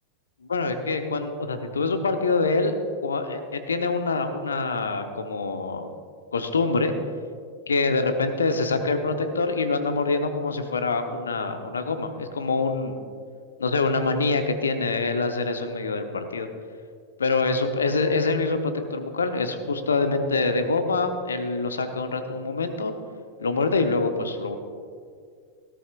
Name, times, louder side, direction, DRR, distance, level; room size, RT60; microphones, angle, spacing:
voice 1, 0.5-2.7 3.0-5.9 6.3-6.9 7.7-13.0 13.6-16.5 17.2-22.9 23.4-24.6, left 3 dB, 70° left, 7 dB, 1.0 m, -25 dB
18.0 x 13.0 x 2.5 m, 2.1 s
figure-of-eight pair, 90°, 0 cm